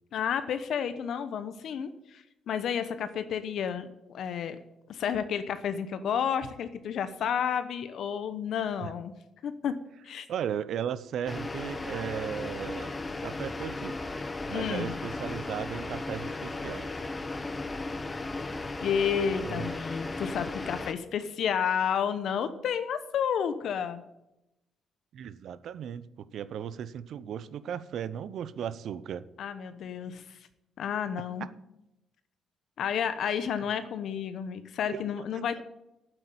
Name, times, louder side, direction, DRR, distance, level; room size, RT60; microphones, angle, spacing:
voice 1, 0.1-4.6 4.9-9.1 9.4-9.8 10.0-10.3 14.5-14.9 18.8-24.0 29.4-30.4 30.8-31.5 32.8-35.6, left 8 dB, 70° left, 11 dB, 0.9 m, -31 dB
voice 2, 10.3-14.0 14.5-16.9 19.4-19.7 25.1-29.2 34.9-35.0 35.6-35.7, right 9 dB, 70° right, 16 dB, 0.7 m, -36 dB
sound 1, 11.3-20.9, left 2 dB, 25° left, 1.1 m, -36 dB
9.1 x 8.1 x 9.1 m, 0.90 s
cardioid pair, 90°, 0 cm